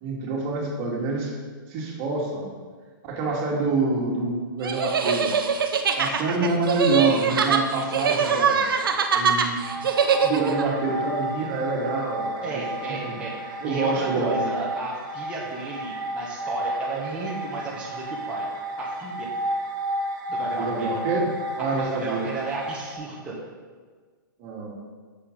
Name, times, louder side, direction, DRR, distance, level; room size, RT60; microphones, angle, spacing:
voice 1, 0.0-1.3 1.7-2.5 3.0-5.3 5.9-8.7 9.1-9.9 10.2-13.2 13.6-14.5 20.5-21.3 21.6-22.2 24.4-24.7, right 3 dB, 40° right, -2 dB, 2.2 m, -27 dB
sound 1, 4.6-10.6, right 6 dB, 75° right, 0.9 m, -23 dB
sound 2, 9.6-22.9, right 1 dB, 60° right, 1.7 m, -32 dB
voice 2, 12.4-18.5 18.8-19.3 20.3-20.9 21.6-23.4, right 3 dB, 10° right, -7 dB, 1.6 m, -33 dB
10.0 x 6.9 x 3.9 m, 1.5 s
hypercardioid pair, 135°, 12 cm